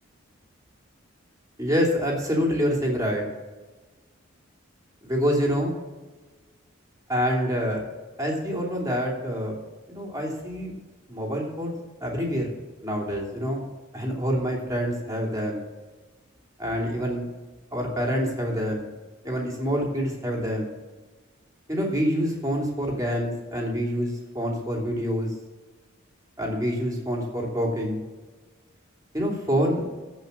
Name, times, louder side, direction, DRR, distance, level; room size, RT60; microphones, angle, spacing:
voice 1, 1.6-3.2 5.0-5.7 7.1-7.8 8.2-9.6 9.9-10.7 11.1-11.7 12.0-12.5 12.8-13.7 13.9-15.6 16.6-17.3 17.7-18.9 19.2-20.7 21.7-25.3 26.4-28.0 29.1-29.8, equal, 15° right, -1 dB, 2.9 m, -26 dB
15.0 x 5.7 x 7.2 m, 1.3 s
head